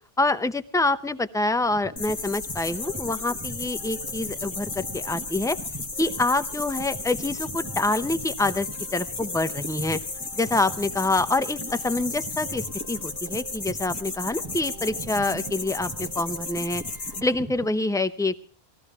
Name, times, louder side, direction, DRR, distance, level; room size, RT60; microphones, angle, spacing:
voice 1, 0.2-5.6 6.0-10.0 10.4-16.8 17.2-18.5, left 2 dB, 5° left, 12 dB, 0.4 m, -26 dB
sound 1, 1.6-17.7, right 2 dB, 15° right, 0.8 m, -42 dB
sound 2, 2.0-17.2, left 3 dB, 50° left, 1.3 m, -34 dB
sound 3, 2.8-17.4, right 3 dB, 50° right, 1.3 m, -48 dB
20.0 x 15.0 x 3.5 m, 0.40 s
omnidirectional pair, 1.1 m